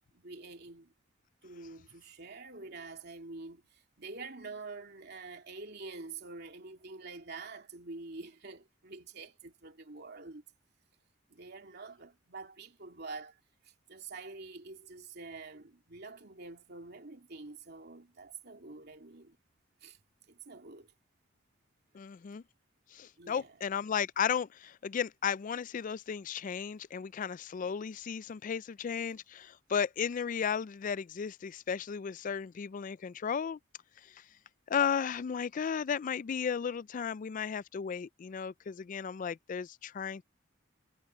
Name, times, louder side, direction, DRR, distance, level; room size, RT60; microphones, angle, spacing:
voice 1, 0.1-0.9 1.4-10.4 11.3-13.4 13.6-19.4 19.8-20.0 20.3-20.9 23.2-23.6, right 3 dB, 55° right, 2.8 m, -47 dB
voice 2, 21.9-22.4 22.9-33.6 34.0-34.2 34.7-40.2, left 7 dB, 40° left, 0.3 m, -34 dB
head